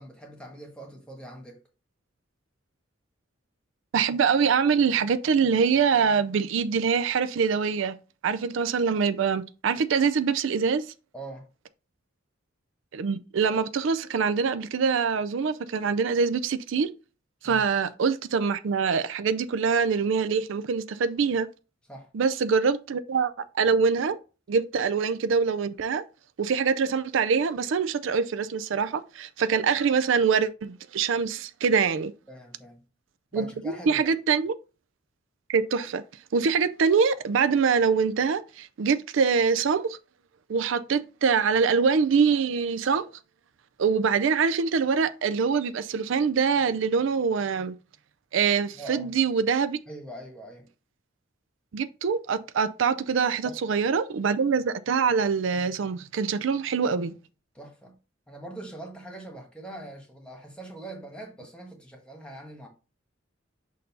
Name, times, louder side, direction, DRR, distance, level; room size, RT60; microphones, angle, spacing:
voice 1, 0.0-1.6 11.1-11.5 17.4-17.6 21.9-22.1 32.3-32.8 33.3-34.1 48.7-49.1 49.9-50.7 53.4-53.8 57.5-58.0 58.3-62.7, right 1 dB, 5° left, 1.4 m, -42 dB
voice 2, 3.9-8.0 8.2-10.9 12.9-16.9 17.4-21.5 22.1-24.2 24.5-26.0 26.4-32.1 33.3-34.5 35.5-36.0 36.3-40.0 40.5-43.0 43.8-47.8 48.3-49.8 51.7-57.1, right 5 dB, 70° right, 0.4 m, -24 dB
6.5 x 2.7 x 5.4 m
head